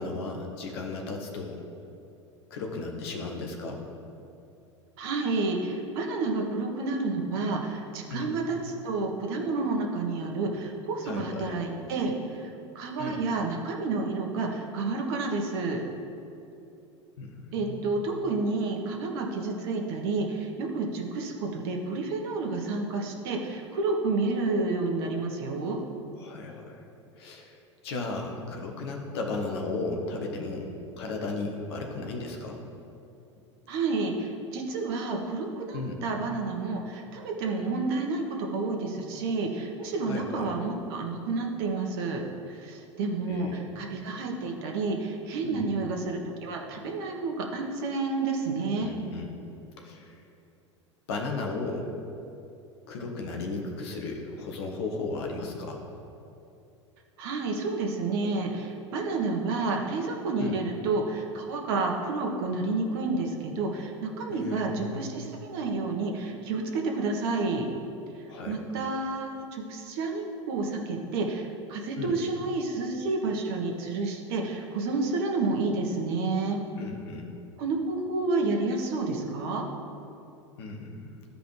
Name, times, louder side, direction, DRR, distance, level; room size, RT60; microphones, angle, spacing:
voice 1, 0.0-1.6 2.5-3.8 8.1-8.3 11.0-11.5 13.0-13.2 17.2-18.0 26.2-26.8 27.2-27.6 27.8-32.6 35.7-36.0 40.0-40.5 43.3-44.0 45.4-45.7 48.8-49.4 49.8-50.2 51.1-51.9 52.9-55.8 60.4-60.6 64.3-65.1 68.2-68.6 72.0-72.2 76.8-77.3 80.6-81.1, left 3 dB, 55° left, 2 dB, 1.3 m, -35 dB
voice 2, 5.0-15.8 17.5-25.8 33.7-42.2 42.5-48.9 57.2-67.7 68.4-76.6 77.6-79.6, right 3 dB, 50° right, 1 dB, 1.3 m, -30 dB
14.0 x 5.1 x 3.3 m, 2.7 s
figure-of-eight pair, 80°, 16 cm